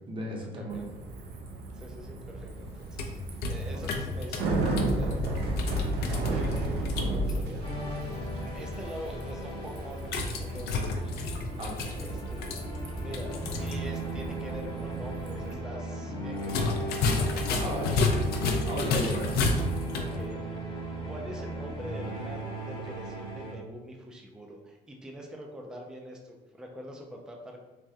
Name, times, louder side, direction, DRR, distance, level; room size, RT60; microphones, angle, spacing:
voice 1, 0.1-0.9 3.7-4.0 11.6-12.0 17.6-18.1 18.7-19.4, right 1 dB, 30° right, -1 dB, 0.7 m, -35 dB
Bicycle, 0.7-15.5, right 2 dB, 70° right, 0.5 m, -34 dB
voice 2, 1.7-3.2 3.5-5.2 6.1-7.7 8.5-11.1 12.0-12.4 13.0-16.9 17.2-18.4 19.9-20.4 21.0-27.6, equal, 5° right, 1 dB, 0.3 m, -44 dB
sound 1, 2.7-7.4 10.0-13.8 14.1-14.2 16.4-20.2, left 3 dB, 70° left, 0.4 m, -31 dB
sound 2, 7.6-23.6, right 1 dB, 30° left, 0.7 m, -37 dB
3.4 x 2.1 x 2.7 m, 1.1 s
cardioid pair, 110°, 17 cm